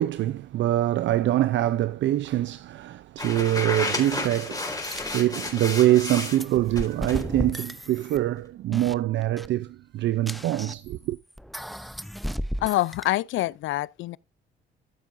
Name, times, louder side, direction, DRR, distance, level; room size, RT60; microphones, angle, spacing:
voice 1, 0.0-11.2, right 14 dB, 70° right, 0.5 m, -24 dB
sound 1, 3.2-6.4 6.7-7.2, left 2 dB, 20° left, 4.0 m, -32 dB
sound 2, 4.8-5.2 5.5-5.7 6.0-8.4 8.7-9.0 9.2-9.5 10.3-10.9 11.3-13.1, equal, ahead, 0.6 m, -35 dB
voice 2, 12.6-14.2, left 16 dB, 80° left, 0.4 m, -26 dB
14.5 x 7.5 x 2.6 m
cardioid pair, 90°, 20 cm